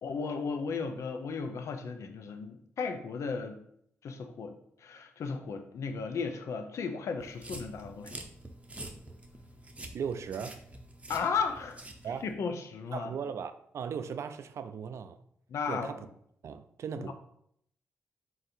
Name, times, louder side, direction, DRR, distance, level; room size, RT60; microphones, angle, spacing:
voice 1, 0.0-3.6 4.0-4.6 4.8-8.2 11.1-11.8 12.2-13.1 15.5-15.9 16.9-17.1, left 5 dB, 70° left, 6 dB, 0.5 m, -35 dB
sound 1, 7.2-12.3, right 1 dB, 25° right, 0.6 m, -47 dB
voice 2, 9.9-10.6 12.0-12.3 12.9-15.2 15.7-16.1 16.4-17.1, right 7 dB, 65° right, 10 dB, 0.3 m, -37 dB
3.8 x 2.6 x 4.1 m, 0.70 s
supercardioid pair, 55°, 5 cm